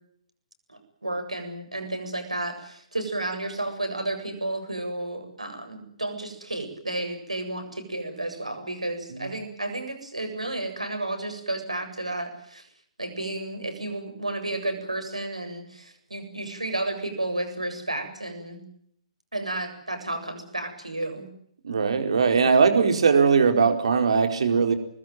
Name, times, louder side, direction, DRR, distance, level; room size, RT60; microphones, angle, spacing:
voice 1, 0.7-12.7 13.0-18.6 19.3-21.3, right 2 dB, 85° right, 6 dB, 7.9 m, -32 dB
voice 2, 21.6-24.7, right 5 dB, 60° right, 6 dB, 4.6 m, -20 dB
25.5 x 21.0 x 9.4 m, 0.68 s
figure-of-eight pair, 125°, 3 cm